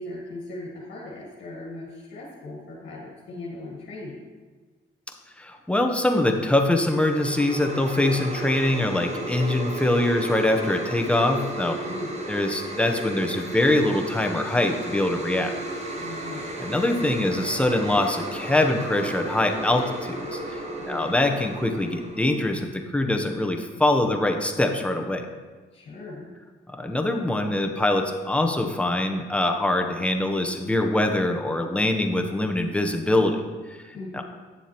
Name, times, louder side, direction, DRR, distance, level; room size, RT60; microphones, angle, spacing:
voice 1, 0.0-4.3 11.8-12.2 16.0-16.4 20.8-21.1 25.7-26.3 33.9-34.2, left 2 dB, 60° left, -4 dB, 1.7 m, -38 dB
voice 2, 5.4-11.8 12.3-15.5 16.6-20.4 20.9-25.2 26.7-34.2, left 1 dB, 5° left, 4 dB, 0.8 m, -23 dB
sound 1, 6.2-22.6, right 1 dB, 35° right, 1.3 m, -34 dB
9.2 x 7.0 x 2.9 m, 1.4 s
cardioid pair, 90°, 20 cm